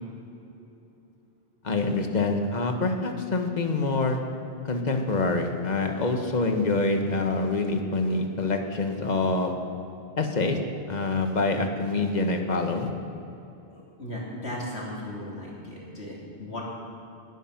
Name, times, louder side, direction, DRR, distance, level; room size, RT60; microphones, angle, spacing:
voice 1, 1.6-4.2 4.6-9.5 10.2-10.6 10.9-12.9, left 3 dB, 45° left, 4 dB, 1.3 m, -26 dB
voice 2, 13.7-16.6, left 1 dB, 75° left, -4 dB, 3.4 m, -36 dB
19.5 x 9.6 x 5.9 m, 2.8 s
omnidirectional pair, 1.1 m